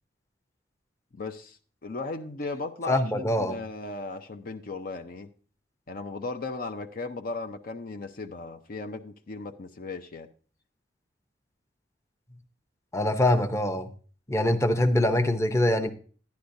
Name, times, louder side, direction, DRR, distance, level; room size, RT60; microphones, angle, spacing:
voice 1, 1.1-1.6 1.8-5.3 5.9-10.3, left 3 dB, 50° left, 0.6 m, -36 dB
voice 2, 2.9-3.6 12.9-13.9 14.3-15.9, left 1 dB, 15° left, 0.8 m, -24 dB
11.5 x 10.5 x 2.7 m
head